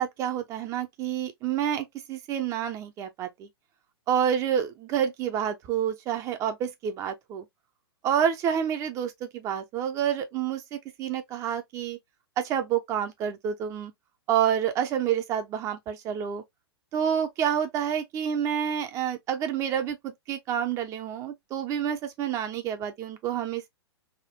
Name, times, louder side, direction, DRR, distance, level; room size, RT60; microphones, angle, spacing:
voice 1, 0.0-3.5 4.1-7.4 8.0-12.0 12.4-13.9 14.3-16.4 16.9-23.7, right 9 dB, 25° right, 0.5 m, -28 dB
3.5 x 2.2 x 2.5 m
figure-of-eight pair, 105°, 14 cm